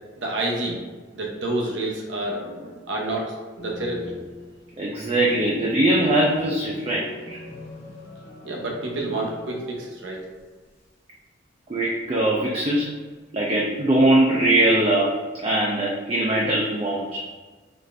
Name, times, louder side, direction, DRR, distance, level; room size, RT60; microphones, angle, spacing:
voice 1, 0.2-0.8 1.1-4.1 8.4-10.2, right 2 dB, 85° right, -1 dB, 0.8 m, -29 dB
sound 1, 3.6-10.1 10.4-10.5 12.2-12.8 13.9-14.6, left 1 dB, 90° left, 1.1 m, -42 dB
voice 2, 4.8-7.4 11.7-12.9 13.3-17.3, right 1 dB, 30° right, -4 dB, 0.4 m, -21 dB
4.0 x 2.5 x 3.2 m, 1.3 s
head